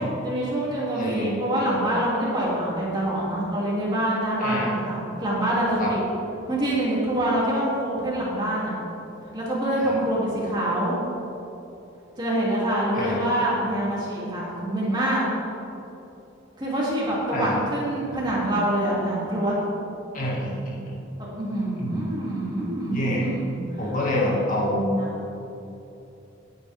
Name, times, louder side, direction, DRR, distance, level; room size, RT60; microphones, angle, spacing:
voice 1, 0.2-6.0 6.5-8.7 9.3-11.0 12.2-15.2 16.6-19.5 21.3-23.6 24.1-24.8, right 1 dB, 20° right, -7 dB, 3.2 m, -25 dB
voice 2, 0.9-1.3 4.4-4.7 5.8-5.9 9.8-10.0 12.9-13.2 17.3-17.6 20.1-21.0 21.8-22.2 22.9-23.3 23.8-25.3, left 1 dB, 40° left, -4 dB, 2.6 m, -27 dB
17.0 x 9.2 x 3.8 m, 2.9 s
head